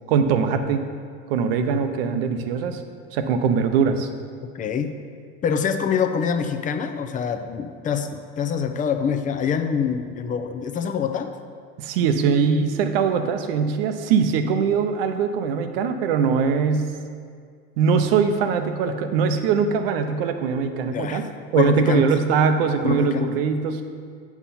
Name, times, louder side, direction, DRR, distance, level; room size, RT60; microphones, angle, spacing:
voice 1, 0.1-0.9 1.3-2.8 3.1-4.1 11.8-16.9 17.8-21.3 21.5-23.8, right 6 dB, 80° right, 8 dB, 0.8 m, -21 dB
voice 2, 4.5-4.9 5.4-11.3 20.9-21.3 21.5-22.1 22.8-23.4, left 7 dB, 25° left, 6 dB, 0.6 m, -25 dB
9.0 x 6.0 x 4.2 m, 2.1 s
supercardioid pair, 130°, 29 cm